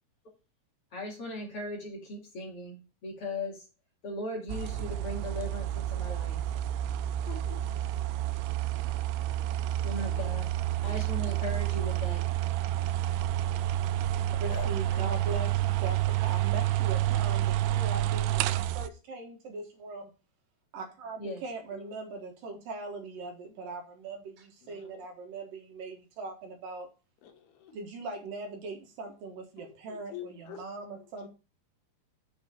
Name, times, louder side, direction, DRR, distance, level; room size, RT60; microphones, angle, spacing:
voice 1, 0.9-3.7 4.0-6.5 9.8-10.5 10.8-12.3 21.2-21.5, left 1 dB, 40° left, 2.5 m, -38 dB
sound 1, 4.5-18.9, right 13 dB, 90° right, 2.6 m, -29 dB
voice 2, 7.3-7.6 14.1-15.1 21.8-21.9 24.6-25.0 27.2-27.8 29.6-30.6 30.9-31.3, left 7 dB, 80° left, 3.0 m, -46 dB
voice 3, 14.2-20.1 20.7-26.9 27.7-31.3, right 3 dB, 65° right, 2.9 m, -40 dB
7.5 x 4.4 x 6.9 m
omnidirectional pair, 4.7 m